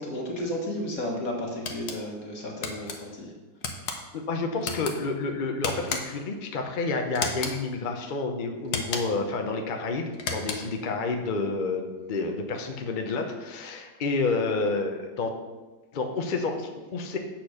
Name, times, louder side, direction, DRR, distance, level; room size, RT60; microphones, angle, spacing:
voice 1, 0.0-3.3, left 1 dB, 60° left, -1 dB, 2.0 m, -33 dB
sound 1, 1.6-2.0 2.6-3.0 3.6-4.0 4.6-4.9 5.6-6.2 7.1-7.6 8.6-9.2 10.1-10.8, left 4 dB, 85° left, 1.5 m, -33 dB
voice 2, 4.1-15.3 15.9-17.2, left 3 dB, 45° left, 4 dB, 0.6 m, -29 dB
7.9 x 4.3 x 6.4 m, 1.2 s
omnidirectional pair, 1.7 m